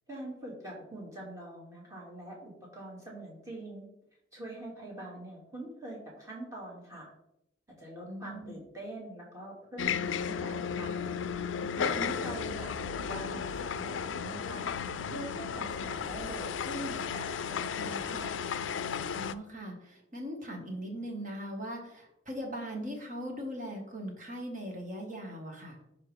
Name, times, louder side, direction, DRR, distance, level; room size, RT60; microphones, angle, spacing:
voice 1, 0.1-3.9 4.3-7.1 7.7-11.0 11.8-14.7 15.0-18.4, right 1 dB, 15° right, -4 dB, 2.4 m, -44 dB
voice 2, 8.1-8.6 11.9-12.0 19.1-25.8, equal, 40° right, 1 dB, 1.7 m, -40 dB
sound 1, 9.8-19.3, left 7 dB, 75° left, 0.4 m, -34 dB
11.0 x 4.9 x 3.5 m, 0.83 s
head